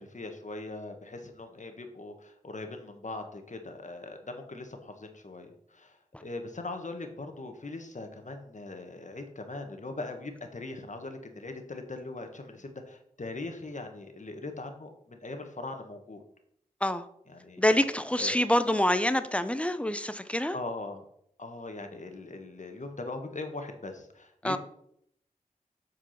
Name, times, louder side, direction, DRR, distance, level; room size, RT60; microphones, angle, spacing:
voice 1, 0.0-16.2 17.3-17.6 18.2-18.5 20.5-21.0 21.4-24.6, left 2 dB, 55° left, 5 dB, 1.4 m, -40 dB
voice 2, 17.6-20.6 24.4-24.6, left 1 dB, 10° left, 11 dB, 0.7 m, -26 dB
7.9 x 4.8 x 5.8 m, 0.70 s
wide cardioid pair, 45°, 15 cm